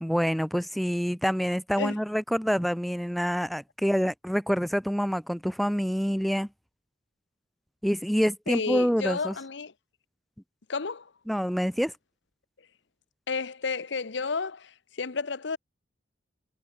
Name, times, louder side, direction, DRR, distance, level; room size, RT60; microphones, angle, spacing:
voice 1, 0.0-6.5 7.8-9.3 11.3-11.9, equal, ahead, 0.8 m, -27 dB
voice 2, 8.5-9.7 10.7-11.1 13.3-15.6, left 4 dB, 70° left, 0.9 m, -31 dB
head